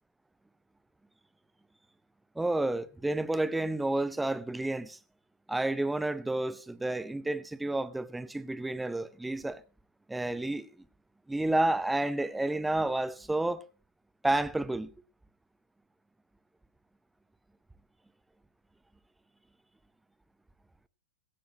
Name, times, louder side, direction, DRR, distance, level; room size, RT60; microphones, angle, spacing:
voice 1, 2.4-5.0 5.5-9.6 10.1-10.8 11.3-13.6 14.2-14.9, right 2 dB, 5° right, 0.7 m, -30 dB
16.5 x 15.5 x 3.0 m
hypercardioid pair, 105°, 0 cm